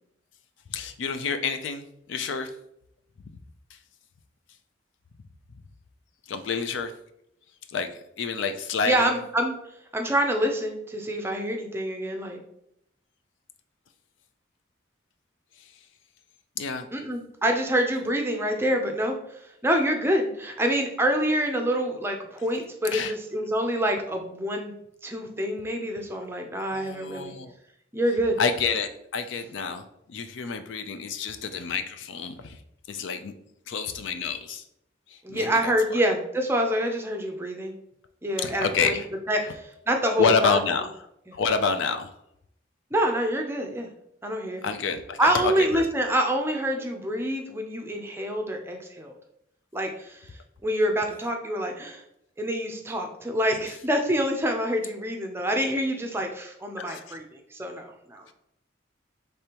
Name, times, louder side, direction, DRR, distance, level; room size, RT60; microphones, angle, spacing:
voice 1, 0.7-2.5 3.7-3.8 6.3-6.9 7.7-9.1 15.6-15.7 16.6-16.9 22.9-23.1 26.6-27.5 28.4-32.6 32.9-33.3 33.7-34.6 35.1-36.0 38.4-39.1 39.4-39.5 40.2-41.1 41.3-42.1 44.6-45.8 53.5-53.6 56.8-57.2 58.3-58.4, left 5 dB, 70° left, 8 dB, 0.4 m, -28 dB
voice 2, 8.8-9.6 9.9-12.4 16.9-24.7 25.0-27.3 27.9-28.4 35.2-37.7 38.2-39.0 39.3-39.6 39.9-40.6 42.9-43.9 44.2-44.6 45.2-49.2 49.7-50.3 50.6-52.0 52.4-58.3, equal, 10° right, 3 dB, 0.5 m, -26 dB
5.2 x 3.3 x 2.9 m, 0.77 s
head